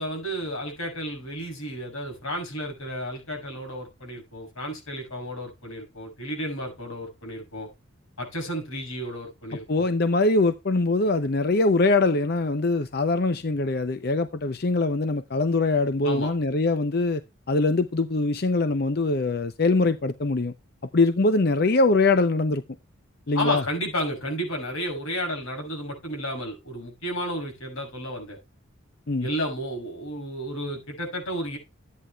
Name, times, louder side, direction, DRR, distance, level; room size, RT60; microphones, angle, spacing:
voice 1, 0.0-7.7 8.2-9.9 16.0-16.3 23.3-28.4 29.2-31.6, equal, 90° left, 6.2 m, -32 dB
voice 2, 9.7-17.2 17.5-20.5 20.9-22.6 23.3-23.6 29.1-29.3, left 3 dB, 50° left, 0.6 m, -23 dB
13.0 x 9.5 x 2.3 m
head